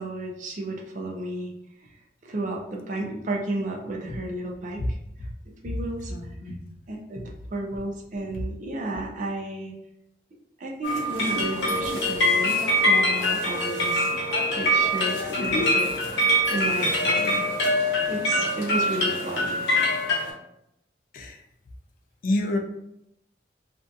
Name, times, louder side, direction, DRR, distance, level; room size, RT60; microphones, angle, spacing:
voice 1, 0.0-1.5 2.2-5.0 5.5-6.1 6.9-7.2 7.5-9.7 10.6-14.1 14.6-15.9 16.5-17.5 18.1-19.6, right 1 dB, 45° right, 0 dB, 0.5 m, -32 dB
voice 2, 6.1-6.6 21.1-21.4 22.2-22.6, left 1 dB, 50° left, 3 dB, 0.4 m, -28 dB
sound 1, 10.8-20.3, left 1 dB, 80° left, 0.7 m, -24 dB
2.6 x 2.5 x 2.3 m, 0.81 s
head